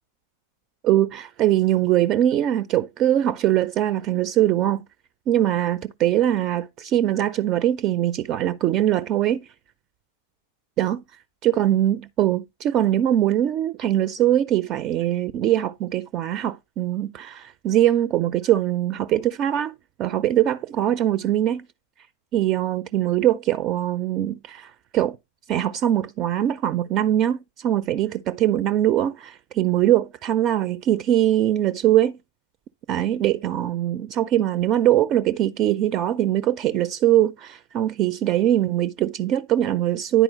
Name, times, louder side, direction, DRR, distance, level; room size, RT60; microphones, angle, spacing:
voice 1, 0.8-4.8 5.3-9.4 10.8-11.0 11.4-19.7 20.0-21.7 22.3-25.2 25.5-32.2 32.9-40.2, right 12 dB, 35° right, 0.4 m, -22 dB
10.0 x 4.4 x 3.8 m
figure-of-eight pair, 90°, 0 cm